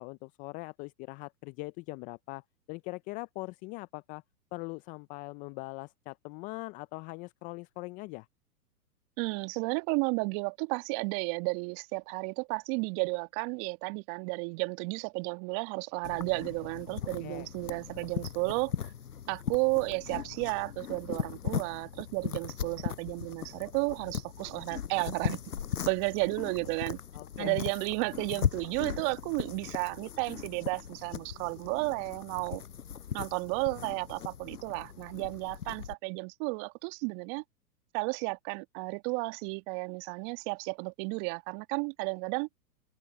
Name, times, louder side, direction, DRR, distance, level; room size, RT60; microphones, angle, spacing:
voice 1, 0.0-4.2 4.5-8.3 17.2-17.5 27.1-27.7, left 25 dB, 20° left, 0.4 m, -41 dB
voice 2, 9.2-18.9 19.3-25.4 25.9-27.0 27.4-32.6 33.1-37.4 37.9-42.5, right 32 dB, 40° right, 2.3 m, -33 dB
sound 1, 16.0-36.0, left 8 dB, 75° left, 6.3 m, -38 dB
open air
hypercardioid pair, 110°, 46 cm